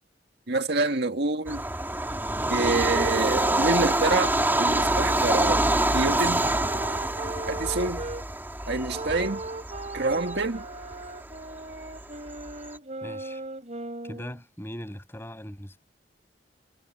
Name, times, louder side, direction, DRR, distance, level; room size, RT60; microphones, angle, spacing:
voice 1, 0.5-1.6 2.5-4.3 4.6-5.7 5.9-6.5 7.5-8.0 8.7-9.4 9.9-10.6, right 3 dB, 65° right, 1.9 m, -27 dB
Bird vocalization bird call bird song / Train, 1.5-12.7, right 1 dB, 10° right, 2.9 m, -26 dB
sound 1, 2.4-8.2 8.9-14.4, right 2 dB, 40° right, 5.3 m, -38 dB
voice 2, 13.0-13.4 14.0-15.8, equal, 15° left, 7.0 m, -39 dB
head